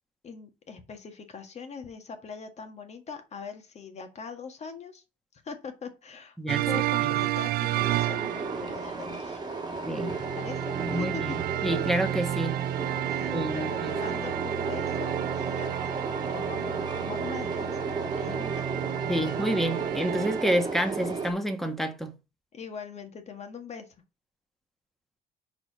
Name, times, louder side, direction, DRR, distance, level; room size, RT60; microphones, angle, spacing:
voice 1, 0.2-5.0 5.4-6.4 6.7-9.6 10.3-11.2 13.1-15.8 16.3-18.5 22.5-23.9, left 5 dB, 40° left, 1.8 m, -42 dB
sound 1, 6.5-9.0 10.0-20.6, right 14 dB, 65° right, 0.4 m, -31 dB
Train, 7.8-21.3, right 4 dB, 25° right, 1.6 m, -33 dB
voice 2, 9.8-10.2 10.9-12.6 13.3-13.9 19.1-22.1, right 1 dB, ahead, 1.4 m, -29 dB
5.0 x 4.8 x 6.1 m
cardioid pair, 110°, 17 cm